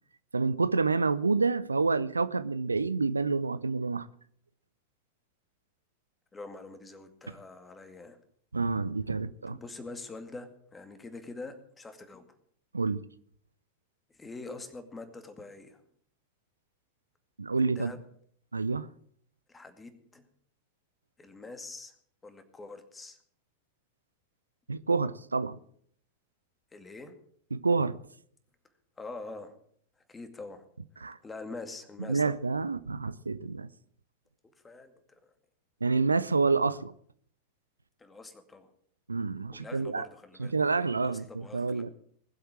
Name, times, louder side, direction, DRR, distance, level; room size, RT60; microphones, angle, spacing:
voice 1, 0.3-4.1 8.5-9.6 12.7-13.0 17.4-17.9 18.5-18.9 24.7-25.6 27.5-28.0 31.0-31.2 32.1-33.7 35.8-36.9 39.1-40.1 40.4-41.9, right 4 dB, 80° right, 0.5 m, -28 dB
voice 2, 6.3-8.2 9.5-12.3 14.1-15.8 17.8-18.0 19.5-20.3 21.2-22.0 22.2-23.2 26.7-27.1 29.0-29.5 30.0-30.6 30.9-32.5 34.6-35.3 38.0-38.7 39.5-41.8, left 3 dB, 15° left, 2.2 m, -45 dB
20.0 x 8.0 x 7.4 m
figure-of-eight pair, 90°, 0 cm